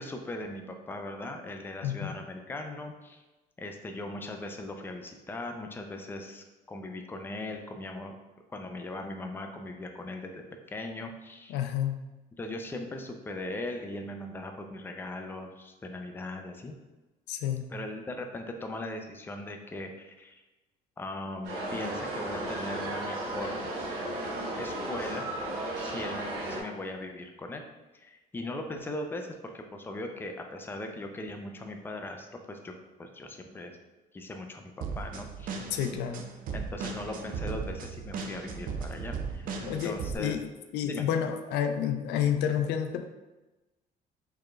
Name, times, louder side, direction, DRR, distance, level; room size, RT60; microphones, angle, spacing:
voice 1, 0.0-3.2 3.6-8.1 8.5-11.6 12.4-16.8 17.7-20.4 21.0-23.7 24.6-25.2 25.8-27.6 27.9-32.7 33.0-33.7 34.1-35.5 36.5-40.4 40.8-41.0, left 2 dB, 10° left, 4 dB, 0.4 m, -39 dB
voice 2, 11.5-12.0 17.3-17.7 35.7-36.3 39.7-40.5 40.7-43.1, left 9 dB, 85° left, 7 dB, 0.4 m, -30 dB
sound 1, 21.4-26.6, right 1 dB, 75° right, 1.0 m, -34 dB
sound 2, 34.8-40.2, right 5 dB, 55° right, 0.5 m, -37 dB
4.6 x 3.1 x 2.3 m, 1.1 s
cardioid pair, 110°, 17 cm